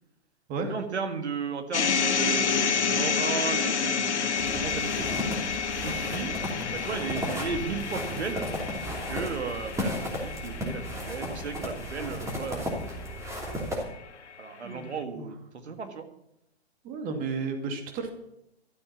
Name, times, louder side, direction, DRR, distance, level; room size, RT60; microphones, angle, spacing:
voice 1, 0.7-5.1 5.7-6.3 6.7-8.5 9.1-13.4 14.4-16.1, right 5 dB, 80° right, 7 dB, 2.0 m, -35 dB
sound 1, 1.7-13.9, left 6 dB, 85° left, 1.5 m, -30 dB
sound 2, 4.4-13.8, equal, 10° right, 3.0 m, -34 dB
voice 2, 14.6-15.3 16.8-18.1, right 4 dB, 25° right, 6 dB, 2.2 m, -33 dB
13.0 x 8.4 x 7.2 m, 0.82 s
hypercardioid pair, 135°, 33 cm